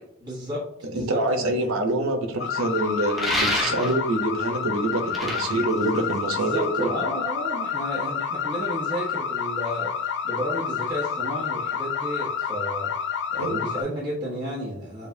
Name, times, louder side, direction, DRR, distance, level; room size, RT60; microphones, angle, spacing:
voice 1, 0.2-1.5 5.2-5.3 6.3-12.9 13.3-15.1, equal, 20° right, -7 dB, 1.3 m, -32 dB
voice 2, 0.9-6.9 13.4-13.6, right 2 dB, 80° right, 5 dB, 0.8 m, -26 dB
sound 1, 2.4-13.8, left 7 dB, 55° left, 0.4 m, -29 dB
sound 2, 3.1-4.1 4.9-6.6, equal, ahead, 0.6 m, -28 dB
6.8 x 2.5 x 2.6 m, 0.71 s
head